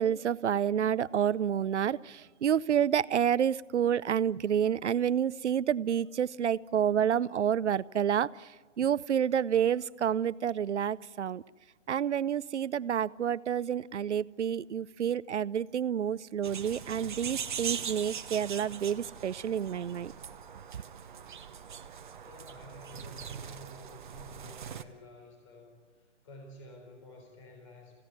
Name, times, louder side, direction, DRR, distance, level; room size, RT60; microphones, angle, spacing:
voice 1, 0.0-8.3 8.8-11.4 11.9-20.1, right 9 dB, 70° right, 18 dB, 0.7 m, -29 dB
sound 1, 16.4-24.8, right 7 dB, 40° right, 1.1 m, -41 dB
voice 2, 22.1-28.0, left 1 dB, 25° left, 2 dB, 4.0 m, -52 dB
26.5 x 16.5 x 9.6 m, 1.4 s
hypercardioid pair, 165°, 36 cm